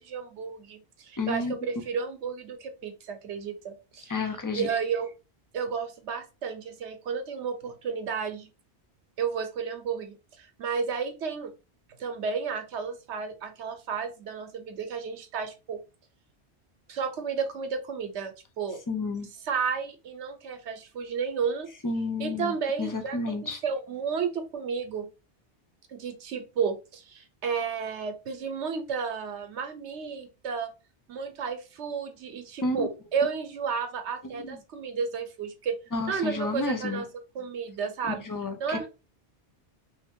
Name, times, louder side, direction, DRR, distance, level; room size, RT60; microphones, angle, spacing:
voice 1, 0.0-5.1 5.5-8.5 9.2-11.5 12.0-15.8 16.9-18.8 19.5-21.7 22.2-25.1 25.9-30.7 31.1-35.8 36.1-37.1 37.3-38.2 38.6-38.9, right 6 dB, 80° right, 7 dB, 1.1 m, -32 dB
voice 2, 1.2-1.6 4.1-4.7 18.9-19.3 21.8-23.6 32.6-32.9 34.3-34.6 35.9-37.0 38.0-38.9, left 3 dB, 25° left, 6 dB, 0.4 m, -31 dB
3.3 x 2.8 x 3.6 m, 0.30 s
omnidirectional pair, 1.1 m